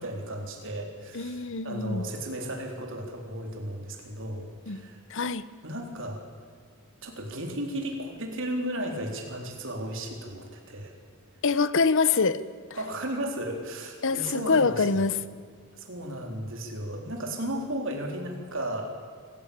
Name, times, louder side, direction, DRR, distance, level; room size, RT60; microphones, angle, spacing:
voice 1, 0.0-5.0 5.6-6.2 7.0-10.9 12.7-15.1 15.7-19.0, right 1 dB, 60° right, 2 dB, 3.9 m, -34 dB
voice 2, 1.1-2.1 4.7-5.4 11.4-12.4 14.0-15.2, left 4 dB, 60° left, 15 dB, 0.9 m, -25 dB
26.0 x 15.5 x 8.9 m, 2.1 s
head